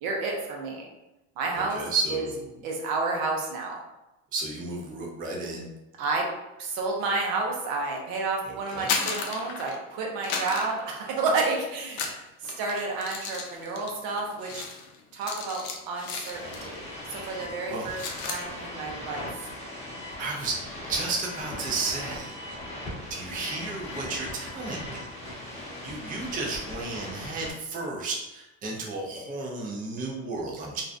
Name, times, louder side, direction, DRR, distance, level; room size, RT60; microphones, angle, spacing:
voice 1, 0.0-0.9 1.4-1.8 2.1-2.2 2.6-3.8 6.0-6.3 6.6-14.6 15.1-19.5, right 3 dB, 70° right, 0 dB, 0.7 m, -30 dB
voice 2, 1.5-2.4 4.3-5.7 8.5-8.9 17.7-17.9 20.2-20.5 20.9-22.4 23.1-25.0 25.5-30.8, right 3 dB, 25° right, -1 dB, 0.4 m, -33 dB
sound 1, 8.7-9.9 10.2-11.5 11.9-16.8 17.1-17.3 17.6-18.5, left 5 dB, 70° left, 0.5 m, -35 dB
sound 2, 16.3-27.5, left 1 dB, 15° left, 0.9 m, -39 dB
2.5 x 2.0 x 2.5 m, 0.97 s
supercardioid pair, 105°, 37 cm